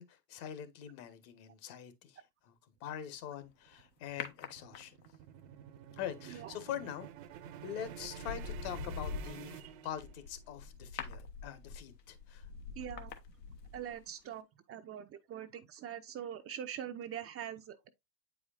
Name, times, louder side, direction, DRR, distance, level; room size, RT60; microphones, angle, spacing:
voice 1, 0.0-2.5 2.8-5.0 6.0-7.1 7.6-12.5, left 10 dB, 55° left, 1.4 m, -44 dB
sound 1, 3.2-10.4, right 10 dB, 55° right, 0.9 m, -50 dB
sound 2, 4.2-5.2 7.1-7.4 7.8-14.0 14.3-14.4, left 5 dB, 80° left, 1.2 m, -44 dB
voice 2, 12.8-13.1 13.7-17.9, right 9 dB, 30° right, 0.6 m, -43 dB
8.5 x 4.9 x 2.4 m
hypercardioid pair, 80°, 49 cm